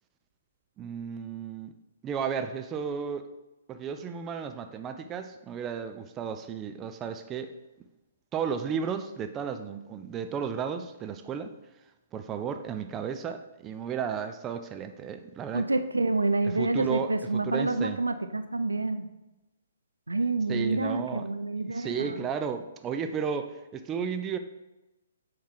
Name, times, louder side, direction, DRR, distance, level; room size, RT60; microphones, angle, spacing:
voice 1, 0.8-1.7 2.0-3.3 3.7-7.5 8.3-11.5 12.1-15.7 16.5-18.0 20.5-21.3 21.7-24.4, right 7 dB, 20° right, 8 dB, 0.4 m, -33 dB
voice 2, 15.5-19.1 20.1-22.1, right 2 dB, 75° right, 9 dB, 0.5 m, -28 dB
7.1 x 4.7 x 3.8 m, 1.0 s
figure-of-eight pair, 125°, 0 cm